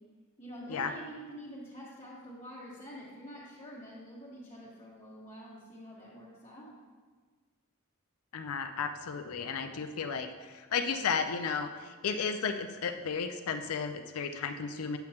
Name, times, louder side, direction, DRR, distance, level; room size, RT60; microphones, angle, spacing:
voice 1, 0.4-6.8, equal, 25° left, -11 dB, 1.5 m, -47 dB
voice 2, 8.3-15.0, left 5 dB, 85° left, 8 dB, 0.5 m, -34 dB
8.4 x 7.8 x 2.9 m, 1.5 s
head